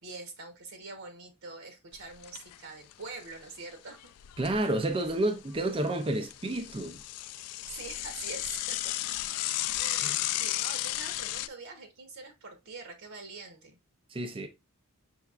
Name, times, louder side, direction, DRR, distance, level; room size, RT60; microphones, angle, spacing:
voice 1, 0.0-4.1 4.5-4.7 7.7-8.9 9.7-13.8, right 3 dB, 65° right, 1.0 m, -45 dB
Bicycle / Mechanisms, 1.9-2.6 2.9-3.0 3.3-3.4 4.0-5.2 5.6-11.5, left 15 dB, 85° left, 0.3 m, -34 dB
voice 2, 4.4-7.0 10.0-10.2 14.1-14.5, right 1 dB, 25° right, 0.4 m, -30 dB
5.7 x 3.5 x 2.3 m
head